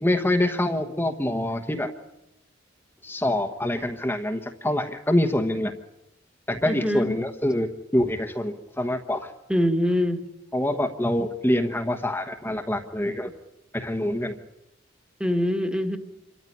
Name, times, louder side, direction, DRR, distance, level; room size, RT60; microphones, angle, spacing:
voice 1, 0.0-1.9 3.0-5.7 6.5-9.3 10.5-13.3 13.7-14.4, left 1 dB, 10° left, 4 dB, 1.1 m, -25 dB
voice 2, 6.6-7.1 9.5-10.2 15.2-16.0, equal, 5° right, 6 dB, 1.6 m, -23 dB
27.0 x 13.5 x 9.8 m, 0.90 s
head